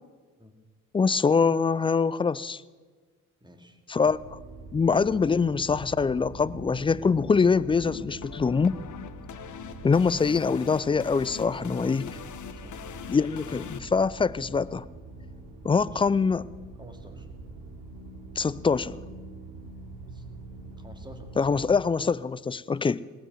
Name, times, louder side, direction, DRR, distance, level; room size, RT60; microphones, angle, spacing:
voice 1, 0.9-2.6 3.9-4.4 4.7-8.8 9.8-12.1 13.1-14.8 15.6-16.5 18.4-19.0 21.4-23.0, left 5 dB, 15° left, 0.4 m, -24 dB
voice 2, 3.4-3.8 12.6-12.9 15.8-16.0 16.8-17.3 20.1-20.2 20.8-21.7, equal, 10° right, 2.4 m, -50 dB
sound 1, 4.0-21.8, right 2 dB, 65° right, 3.2 m, -44 dB
sound 2, 6.9-13.8, left 8 dB, 50° left, 1.1 m, -42 dB
18.0 x 8.1 x 7.8 m
hypercardioid pair, 55°, 39 cm